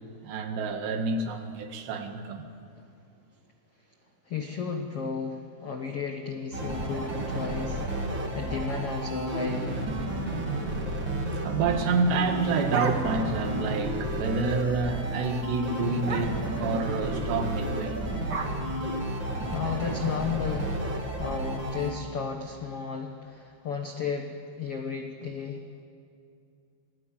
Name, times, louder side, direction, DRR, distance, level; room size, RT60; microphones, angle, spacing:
voice 1, 0.2-2.5 11.4-16.3 16.6-18.0, right 4 dB, 75° right, 5 dB, 4.0 m, -28 dB
voice 2, 4.3-9.8 19.5-20.8 21.2-25.6, left 6 dB, 90° left, 4 dB, 1.3 m, -34 dB
sound 1, 6.5-21.9, right 1 dB, 30° right, 3.0 m, -32 dB
sound 2, 12.1-13.4 13.8-13.9 14.1-14.5 14.8-15.0 15.3-15.4 16.0-16.6 17.5-19.5, right 4 dB, 55° right, 1.1 m, -36 dB
28.0 x 19.5 x 8.8 m, 2.5 s
omnidirectional pair, 5.0 m